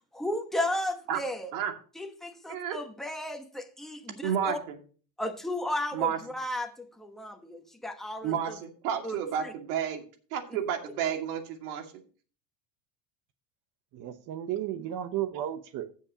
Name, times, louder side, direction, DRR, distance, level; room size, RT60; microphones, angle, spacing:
voice 1, 0.1-1.5 2.0-4.6 5.2-8.6 9.0-9.5, left 1 dB, ahead, 1.2 m, -34 dB
voice 2, 4.2-4.7 5.9-6.2 8.2-10.0 10.3-11.9, right 8 dB, 90° right, 2.5 m, -31 dB
voice 3, 13.9-15.9, right 11 dB, 45° right, 1.0 m, -33 dB
15.5 x 7.4 x 2.9 m
cardioid pair, 135°, 43 cm